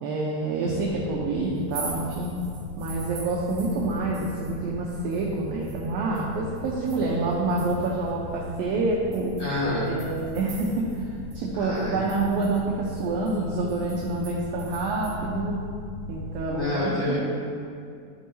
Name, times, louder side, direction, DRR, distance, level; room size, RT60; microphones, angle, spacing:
voice 1, 0.0-2.3 2.8-9.3 9.8-15.6 16.1-17.2, right 2 dB, 85° right, -3 dB, 2.0 m, -27 dB
sound 1, 0.7-16.6, left 1 dB, 85° left, 2.1 m, -39 dB
sound 2, 1.5-4.6 4.9-8.1 8.5-8.6 9.1-11.1 11.3-11.4 11.7-15.2, right 4 dB, 60° right, 2.0 m, -44 dB
voice 2, 9.4-9.9 11.6-12.0 16.4-17.2, left 1 dB, 50° left, -11 dB, 2.2 m, -28 dB
13.0 x 4.5 x 2.8 m, 2.3 s
omnidirectional pair, 5.0 m